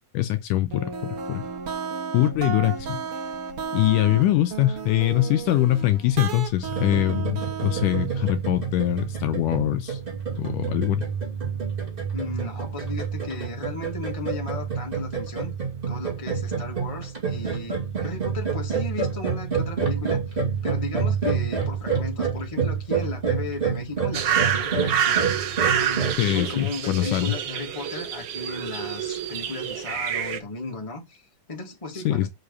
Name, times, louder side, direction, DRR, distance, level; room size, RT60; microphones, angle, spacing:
voice 1, 0.1-1.4 2.1-3.0 3.7-10.0 10.4-11.0 26.2-27.3 32.0-32.3, left 14 dB, 80° left, 2.1 m, -23 dB
sound 1, 0.7-8.3, right 6 dB, 50° right, 2.1 m, -33 dB
sound 2, 6.6-26.1, right 6 dB, 15° right, 2.4 m, -28 dB
voice 2, 12.1-15.5 15.9-20.4 20.6-25.3 25.7-32.3, left 3 dB, 15° left, 1.6 m, -35 dB
sound 3, 24.1-30.4, right 9 dB, 70° right, 1.4 m, -27 dB
6.5 x 5.6 x 6.9 m
omnidirectional pair, 4.0 m